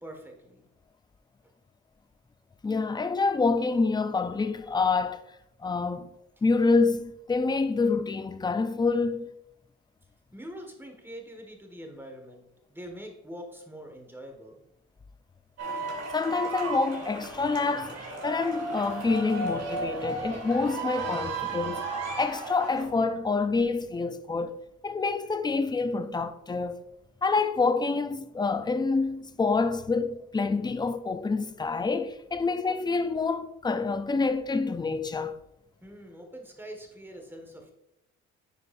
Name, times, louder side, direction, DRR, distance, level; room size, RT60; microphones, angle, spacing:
voice 1, 0.0-0.6 10.3-12.4 12.7-14.6 35.8-37.7, equal, 5° right, 1.6 m, -44 dB
voice 2, 2.6-5.2 5.6-6.1 6.4-9.4 16.1-21.8 22.2-24.6 24.8-26.8 27.2-35.4, left 4 dB, 15° left, 0.5 m, -27 dB
sound 1, 15.6-22.8, right 3 dB, 55° right, 2.4 m, -34 dB
9.7 x 4.8 x 2.6 m
cardioid pair, 90°, 30 cm